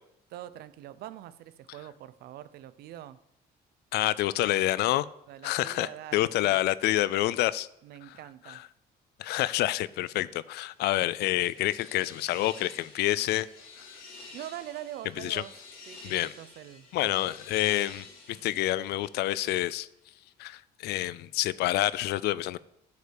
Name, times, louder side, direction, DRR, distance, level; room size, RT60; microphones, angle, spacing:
voice 1, 0.3-3.2 5.3-6.6 7.8-8.6 14.3-15.5 15.9-17.3 18.3-18.5, right 13 dB, 70° right, 0.6 m, -44 dB
voice 2, 3.9-5.1 5.4-7.7 8.1-8.2 8.5-8.6 9.2-13.5 15.2-15.4 16.0-16.3 16.9-18.1 18.4-19.9 20.4-22.6, left 15 dB, 75° left, 0.4 m, -28 dB
sound 1, 10.7-19.7, left 3 dB, 55° left, 3.4 m, -50 dB
7.9 x 5.2 x 6.9 m
cardioid pair, 110°, 17 cm